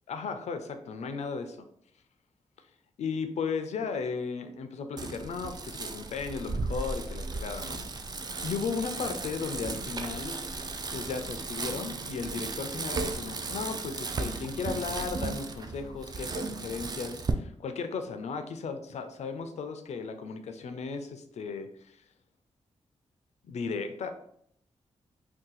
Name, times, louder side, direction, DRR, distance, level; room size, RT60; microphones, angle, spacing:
voice 1, 0.1-1.7 3.0-7.8 8.4-10.4 10.9-22.0 23.4-24.1, left 5 dB, 75° left, 8 dB, 0.4 m, -35 dB
Bicycle, 5.0-17.3, right 3 dB, 35° right, 0.4 m, -35 dB
2.7 x 2.3 x 3.9 m, 0.68 s
cardioid pair, 75°, 12 cm